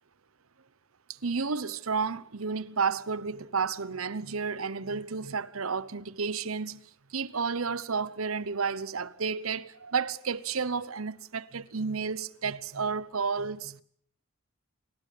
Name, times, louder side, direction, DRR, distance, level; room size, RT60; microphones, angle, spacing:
voice 1, 1.2-6.8 7.1-13.8, right 5 dB, 85° right, 1.0 m, -31 dB
27.5 x 17.5 x 8.5 m
head